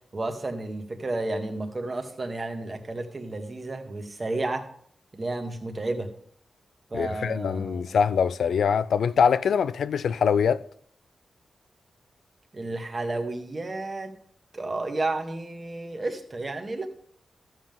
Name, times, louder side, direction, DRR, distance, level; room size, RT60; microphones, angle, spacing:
voice 1, 0.1-4.7 5.1-6.1 6.9-7.8 12.5-14.1 14.5-16.9, right 2 dB, 25° right, 1.4 m, -32 dB
voice 2, 6.9-10.6, left 7 dB, 90° left, 0.4 m, -23 dB
13.5 x 7.6 x 3.6 m
wide cardioid pair, 155°, 0 cm